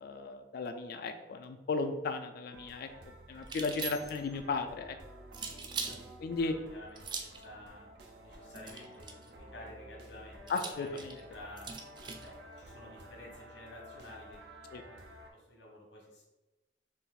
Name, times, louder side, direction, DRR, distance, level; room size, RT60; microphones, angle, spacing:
voice 1, 0.0-2.9 3.3-5.0 6.2-6.6 10.5-11.1 14.7-14.8, left 4 dB, 60° left, 7 dB, 0.3 m, -35 dB
sound 1, 2.5-15.3, equal, 75° right, 0.6 m, -52 dB
sound 2, 3.4-4.3 5.3-6.0 7.0-7.4 8.5-9.3 10.5-12.3, right 5 dB, 25° right, 0.3 m, -41 dB
voice 2, 5.4-6.1 6.4-7.9 8.2-11.7 12.2-14.4 14.8-15.0 15.3-16.2, left 1 dB, 85° left, -3 dB, 1.3 m, -52 dB
4.1 x 2.4 x 3.8 m, 1.0 s
head